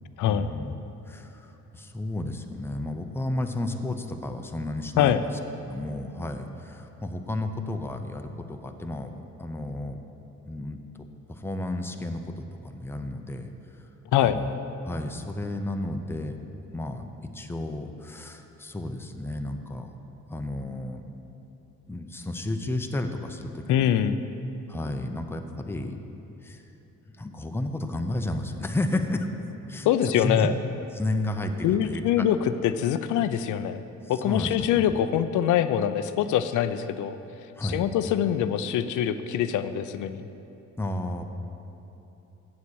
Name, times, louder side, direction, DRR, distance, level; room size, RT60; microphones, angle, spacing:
voice 1, 0.3-0.7 1.1-5.2 5.6-9.1 9.4-10.0 10.4-10.8 11.3-13.5 14.2-14.6 14.8-16.4 16.7-17.1 17.3-19.9 20.3-21.0 21.9-23.9 24.7-26.0 26.4-26.6 27.2-29.3 29.7-29.9 30.2-30.5 30.9-32.2 34.0-35.0 37.6-37.9 40.8-41.2, left 1 dB, 10° left, 5 dB, 0.6 m, -32 dB
voice 2, 23.7-24.2 29.8-30.5 31.6-32.4 32.6-33.8 34.1-37.2 37.6-40.3, left 10 dB, 80° left, 11 dB, 0.5 m, -24 dB
8.3 x 7.4 x 6.3 m, 3.0 s
cardioid pair, 90°, 30 cm